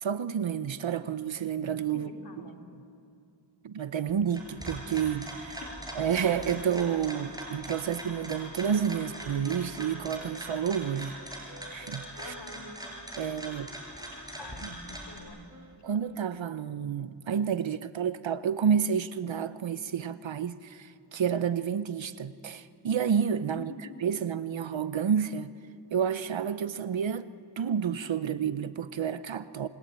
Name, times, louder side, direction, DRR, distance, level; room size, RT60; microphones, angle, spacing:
voice 1, 0.0-2.1 3.6-5.6 6.0-11.1 11.7-12.3 13.2-13.7 15.8-23.7 24.0-25.5 25.9-27.3 27.6-29.7, right 7 dB, 90° right, 13 dB, 0.9 m, -30 dB
voice 2, 1.9-2.6 12.2-12.6 13.2-13.3 14.1-15.4 23.5-23.9, left 3 dB, 65° left, 2 dB, 3.3 m, -46 dB
sound 1, 4.3-15.2, right 1 dB, 10° right, 6.0 m, -41 dB
sound 2, 6.1-16.5, right 2 dB, 40° right, 1.8 m, -53 dB
28.0 x 21.5 x 8.9 m, 2.4 s
wide cardioid pair, 60°, 44 cm